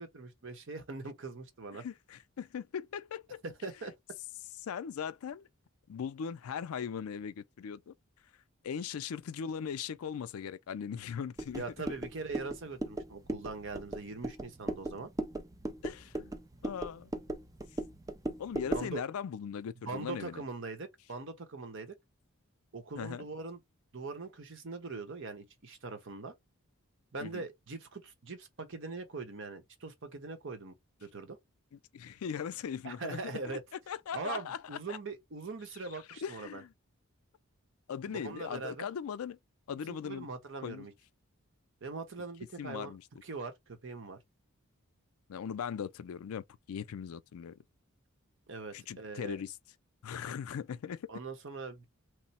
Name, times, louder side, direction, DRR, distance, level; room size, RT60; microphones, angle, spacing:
voice 1, 0.0-1.8 3.4-3.9 11.5-15.1 18.7-19.0 19.8-21.9 22.7-23.6 23.9-26.3 27.1-31.4 32.8-33.6 34.1-36.6 38.1-38.9 39.9-40.9 41.8-42.9 43.2-44.2 48.5-49.4 51.1-51.8, right 3 dB, 60° right, 0.9 m, -42 dB
voice 2, 1.7-3.4 4.6-5.5 5.9-7.9 8.6-11.6 15.8-16.3 16.6-17.1 18.4-20.4 23.0-23.3 27.2-27.4 31.9-33.6 33.9-35.0 36.2-36.7 37.9-39.4 39.7-40.3 40.6-40.9 42.6-43.0 45.3-47.5 48.7-49.5 50.0-51.1, left 7 dB, 80° left, 0.4 m, -39 dB
sound 1, 11.4-19.0, right 1 dB, 15° right, 0.4 m, -38 dB
3.1 x 2.0 x 4.1 m
head